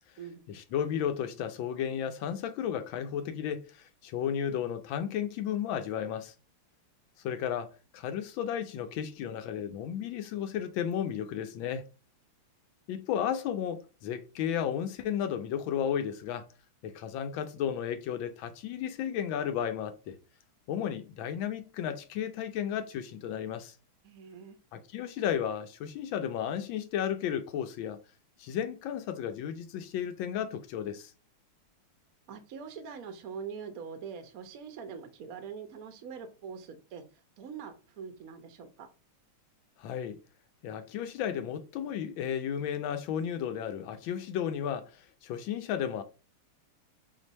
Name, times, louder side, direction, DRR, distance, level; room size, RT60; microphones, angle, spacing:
voice 1, 0.5-6.3 7.2-11.8 12.9-16.5 16.8-20.1 20.7-23.7 24.7-28.0 28.4-31.1 39.8-40.2 40.6-46.0, left 9 dB, 75° left, 1.2 m, -33 dB
voice 2, 24.0-24.6 32.3-37.0 37.4-38.9, right 6 dB, 65° right, 0.8 m, -43 dB
4.4 x 2.6 x 4.1 m
omnidirectional pair, 2.4 m